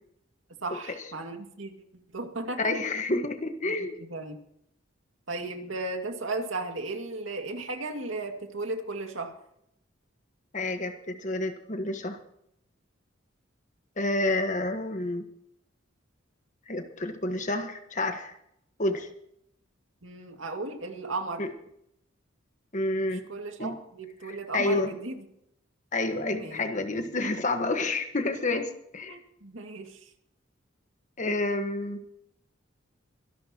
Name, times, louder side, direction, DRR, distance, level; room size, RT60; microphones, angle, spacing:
voice 1, 0.6-1.7 2.1-2.7 3.6-4.4 5.3-9.3 20.0-21.5 23.1-25.2 26.3-26.6 29.1-30.0, right 2 dB, 70° right, 4 dB, 2.3 m, -35 dB
voice 2, 2.6-4.0 10.5-12.2 14.0-15.2 16.7-18.3 18.8-19.1 21.4-21.5 22.7-23.2 23.6-23.7 24.3-24.9 25.9-29.1 31.2-32.0, left 2 dB, 40° left, 7 dB, 1.5 m, -29 dB
25.0 x 12.5 x 3.0 m, 0.73 s
head